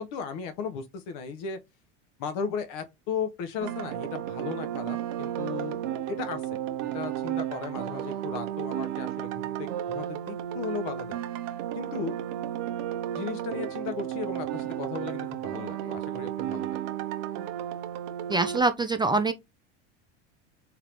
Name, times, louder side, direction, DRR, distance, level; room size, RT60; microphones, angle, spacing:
voice 1, 0.0-1.6 2.2-5.8 6.1-6.4 6.8-11.2 11.7-12.1 13.1-16.7, left 6 dB, 65° left, 1.1 m, -36 dB
sound 1, 3.6-18.6, right 11 dB, 70° right, 0.9 m, -33 dB
voice 2, 18.3-19.3, right 3 dB, 15° right, 0.3 m, -24 dB
3.6 x 3.6 x 3.0 m
supercardioid pair, 105°, 34 cm